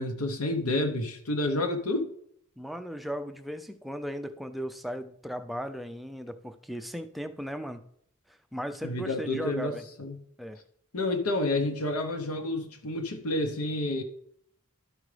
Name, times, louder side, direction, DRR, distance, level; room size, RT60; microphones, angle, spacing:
voice 1, 0.0-2.1 8.8-10.2 10.9-14.0, left 2 dB, 80° left, 0.8 m, -29 dB
voice 2, 2.6-7.8 8.3-9.8 10.4-10.6, equal, ahead, 0.4 m, -37 dB
12.0 x 4.9 x 3.3 m
head